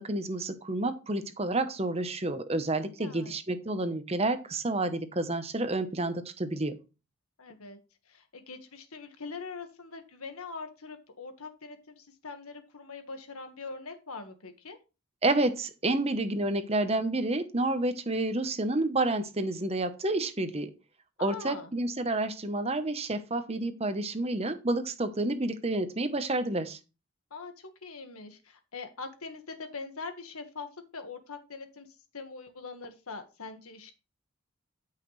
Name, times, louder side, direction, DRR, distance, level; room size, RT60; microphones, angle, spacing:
voice 1, 0.0-6.7 15.2-20.7 21.2-26.8, right 2 dB, 30° right, 10 dB, 0.9 m, -29 dB
voice 2, 3.0-3.3 7.4-7.8 8.1-14.8 21.2-21.7 27.3-33.9, left 4 dB, 85° left, 7 dB, 1.6 m, -43 dB
13.0 x 5.7 x 3.2 m, 0.30 s
head